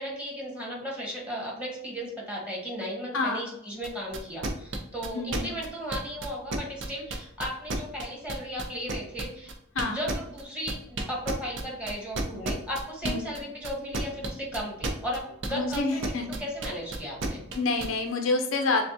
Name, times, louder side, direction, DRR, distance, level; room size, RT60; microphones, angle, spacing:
voice 1, 0.0-9.5 9.8-17.4, equal, 5° right, -3 dB, 1.3 m, -35 dB
voice 2, 3.1-3.5 5.1-5.6 9.7-10.0 13.0-13.4 15.5-16.4 17.5-18.8, left 3 dB, 70° left, 3 dB, 0.6 m, -28 dB
sound 1, 3.8-17.9, right 2 dB, 60° right, 0.6 m, -32 dB
6.6 x 2.3 x 2.8 m, 0.78 s
head